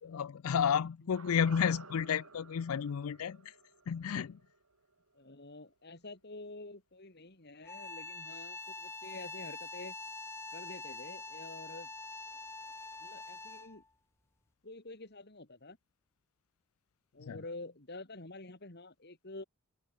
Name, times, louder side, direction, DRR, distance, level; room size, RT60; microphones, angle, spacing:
voice 1, 0.0-3.5 3.9-4.4 17.2-17.4, left 7 dB, 80° left, 0.4 m, -32 dB
sound 1, 1.1-5.4 5.7-5.8, right 4 dB, 85° right, 3.3 m, -53 dB
voice 2, 5.1-10.0 10.5-11.9 13.0-13.8 14.6-15.8 17.1-19.4, left 2 dB, 50° left, 2.5 m, -48 dB
sound 2, 7.6-13.9, left 3 dB, 10° left, 1.0 m, -45 dB
open air
head